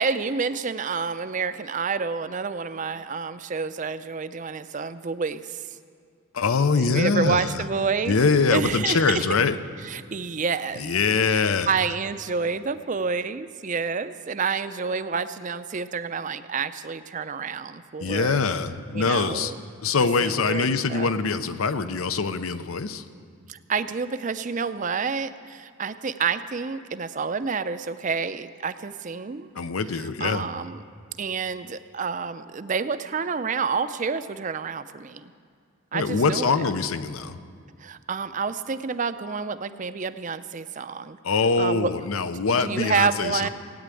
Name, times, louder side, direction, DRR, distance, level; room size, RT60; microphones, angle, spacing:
voice 1, 0.0-5.6 6.8-8.1 8.5-9.2 9.8-10.9 11.3-18.4 18.9-19.6 20.0-21.2 23.5-29.5 29.9-30.8 31.2-35.2 35.9-36.7 37.8-41.2 41.6-41.9 42.6-43.5, right 5 dB, 35° right, 12 dB, 0.5 m, -29 dB
voice 2, 6.3-7.6 8.1-9.6 10.8-11.7 18.0-19.5 19.8-23.0 29.6-30.5 35.9-37.4 41.2-43.5, left 4 dB, 80° left, 12 dB, 0.7 m, -23 dB
17.5 x 9.3 x 8.4 m, 2.1 s
head